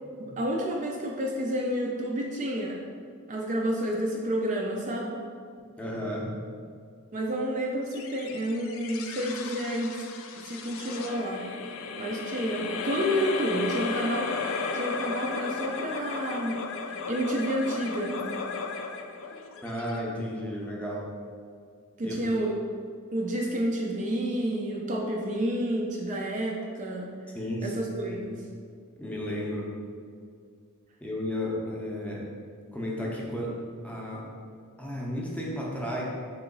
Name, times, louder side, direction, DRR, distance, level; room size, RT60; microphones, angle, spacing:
voice 1, 0.2-2.8 3.3-5.2 7.1-10.0 10.3-11.4 12.0-16.6 16.9-18.3 22.0-22.5 23.1-27.1 27.6-28.4, right 1 dB, 35° right, -1 dB, 0.4 m, -30 dB
voice 2, 5.8-6.3 19.6-21.1 22.0-22.2 27.3-27.7 28.0-28.2 29.0-29.7 31.0-32.3 32.7-33.5 33.8-34.2 34.8-36.0, left 1 dB, 5° left, -4 dB, 0.6 m, -33 dB
sound 1, 7.9-20.5, left 4 dB, 65° left, 0.4 m, -35 dB
3.6 x 2.9 x 3.8 m, 2.2 s
head